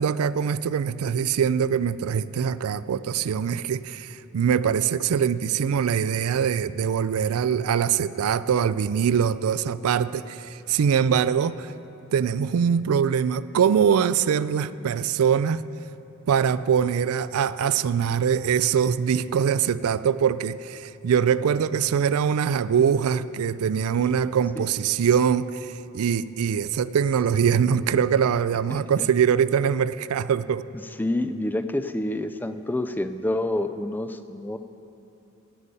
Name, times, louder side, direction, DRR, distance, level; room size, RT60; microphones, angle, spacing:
voice 1, 0.0-11.7 12.1-15.6 16.3-30.6, right 7 dB, 80° right, 15 dB, 0.4 m, -23 dB
voice 2, 28.7-29.1 31.0-34.6, left 1 dB, 10° left, 10 dB, 0.4 m, -28 dB
16.0 x 8.8 x 5.4 m, 2.9 s
head